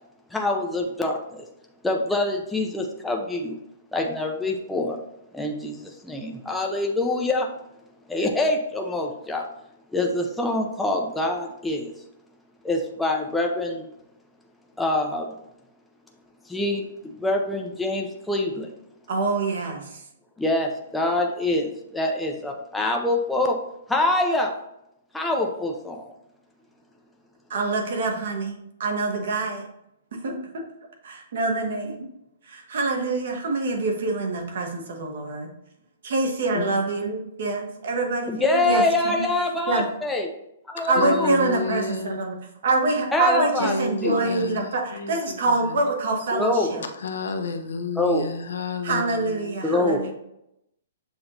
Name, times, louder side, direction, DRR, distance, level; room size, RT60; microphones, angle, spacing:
voice 1, 0.3-1.4 1.8-3.6 3.9-5.0 5.3-7.5 8.1-9.4 9.9-11.9 12.6-13.9 14.8-15.3 16.5-16.8 17.2-18.7 20.4-23.6 23.9-24.6 25.1-26.1 38.3-40.3 40.8-41.3 43.1-43.7 44.0-44.1 46.3-46.9 48.0-48.3 49.6-50.1, left 2 dB, 5° left, 0 dB, 0.4 m, -25 dB
voice 2, 19.1-20.0 27.5-29.6 30.2-30.6 31.0-32.1 32.5-35.5 36.0-39.2 39.7-39.8 40.9-42.3 42.6-46.8 48.8-50.1, right 3 dB, 60° right, 2 dB, 1.0 m, -25 dB
voice 3, 41.0-42.2 43.6-45.8 46.9-49.6, left 4 dB, 80° left, 7 dB, 0.6 m, -31 dB
6.9 x 2.9 x 2.5 m, 0.82 s
hypercardioid pair, 170°, 0 cm